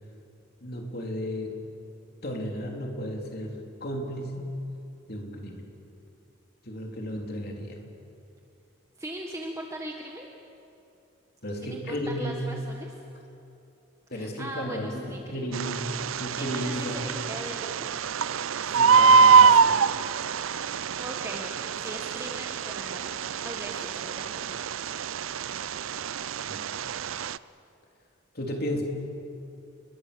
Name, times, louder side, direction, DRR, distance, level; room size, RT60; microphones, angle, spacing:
voice 1, 0.6-1.6 2.2-4.5 5.1-5.7 6.6-7.8 11.4-12.5 14.1-15.8 16.2-17.1 18.7-19.8 26.5-26.7 28.3-28.8, equal, 50° left, 1 dB, 3.6 m, -34 dB
voice 2, 9.0-10.3 11.6-12.9 14.1-15.6 16.4-17.7 21.0-24.5, right 1 dB, 15° right, 0 dB, 1.6 m, -39 dB
Bird, 15.5-27.4, right 5 dB, 85° right, 0.5 m, -24 dB
29.5 x 21.5 x 7.0 m, 2.7 s
head